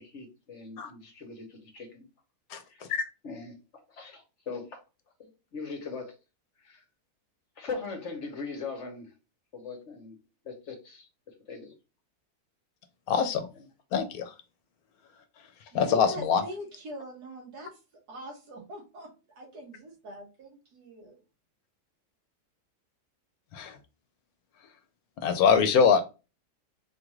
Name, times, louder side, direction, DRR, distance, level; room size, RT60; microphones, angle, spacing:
voice 1, 0.0-2.1 2.7-2.9 3.2-3.6 3.9-4.8 5.2-6.1 6.6-6.8 7.6-9.1 9.5-10.2 10.4-11.1 11.5-11.7, left 4 dB, 55° left, 4 dB, 1.1 m, -40 dB
voice 2, 13.1-13.5 13.9-14.3 15.7-16.4 23.5-23.8 25.2-26.0, left 6 dB, 75° left, 8 dB, 1.1 m, -23 dB
voice 3, 15.7-17.7 18.1-21.2, right 1 dB, 85° right, -1 dB, 2.1 m, -42 dB
4.6 x 2.5 x 3.0 m, 0.29 s
omnidirectional pair, 1.7 m